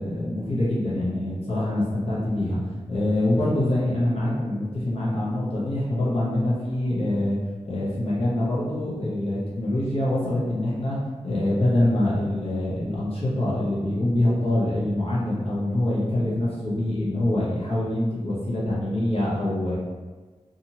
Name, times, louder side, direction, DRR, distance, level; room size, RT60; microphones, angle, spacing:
voice 1, 0.0-2.6 2.9-7.4 7.6-11.0 11.2-19.8, left 1 dB, 55° left, -7 dB, 0.8 m, -25 dB
2.7 x 2.5 x 2.8 m, 1.4 s
wide cardioid pair, 95°, 12 cm